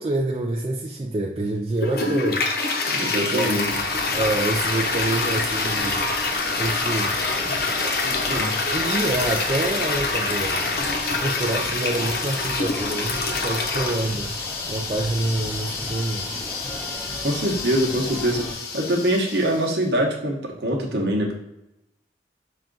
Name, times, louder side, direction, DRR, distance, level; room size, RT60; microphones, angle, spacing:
voice 1, 0.0-2.5 3.1-3.6 4.1-6.1 6.6-7.2 7.8-10.7 11.2-14.3 14.7-16.3, right 2 dB, 30° right, -1 dB, 0.4 m, -27 dB
Toilet flush, 1.8-19.7, left 3 dB, 60° left, 0.7 m, -26 dB
voice 2, 2.9-3.7 8.3-8.5 17.2-18.5 18.7-21.3, right 1 dB, 75° right, 0 dB, 1.0 m, -23 dB
sound 1, 3.7-18.5, equal, 10° left, 0.8 m, -37 dB
5.6 x 2.4 x 3.8 m, 0.88 s
head